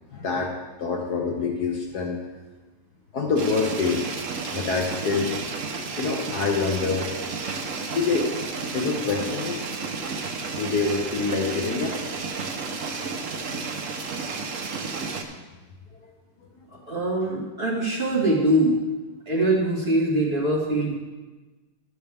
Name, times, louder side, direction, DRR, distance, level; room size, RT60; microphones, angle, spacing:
voice 1, 0.1-0.5 0.8-2.2 3.1-4.1 4.4-5.4 6.0-7.1 7.9-8.3 8.7-9.6 10.5-11.9 14.7-14.8 16.0-16.1 16.4-16.5, left 4 dB, 60° left, 0 dB, 1.3 m, -26 dB
sound 1, 3.4-15.2, right 4 dB, 55° right, 1.0 m, -32 dB
voice 2, 16.9-18.8 19.3-21.0, right 1 dB, 30° right, -5 dB, 2.0 m, -23 dB
12.0 x 8.1 x 3.4 m, 1.2 s
omnidirectional pair, 2.2 m